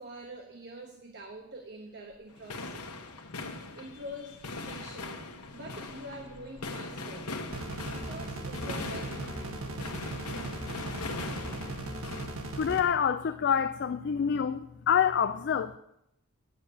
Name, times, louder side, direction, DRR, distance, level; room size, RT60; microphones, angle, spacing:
voice 1, 0.0-2.8 3.7-5.2 5.5-7.3 7.9-9.9, right 1 dB, 50° right, 1.2 m, -45 dB
sound 1, 2.1-2.2 3.9-4.7 5.0-10.5 11.3-12.6, equal, 25° left, 3.3 m, -54 dB
sound 2, 2.3-12.3, left 3 dB, 85° left, 1.3 m, -40 dB
sound 3, 7.5-12.8, right 2 dB, 65° right, 1.6 m, -38 dB
voice 2, 12.6-15.8, left 7 dB, 50° left, 0.4 m, -27 dB
9.7 x 7.3 x 8.6 m
head